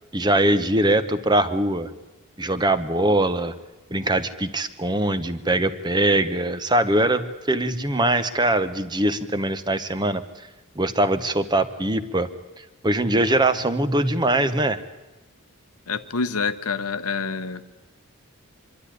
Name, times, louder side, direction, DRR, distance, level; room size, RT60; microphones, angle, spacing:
voice 1, 0.1-1.9 2.4-3.5 3.9-10.2 10.8-12.3 12.8-14.8, right 1 dB, 20° right, 11 dB, 0.9 m, -22 dB
voice 2, 15.9-17.6, left 5 dB, 80° left, 11 dB, 1.0 m, -27 dB
25.0 x 12.5 x 10.0 m, 1.1 s
head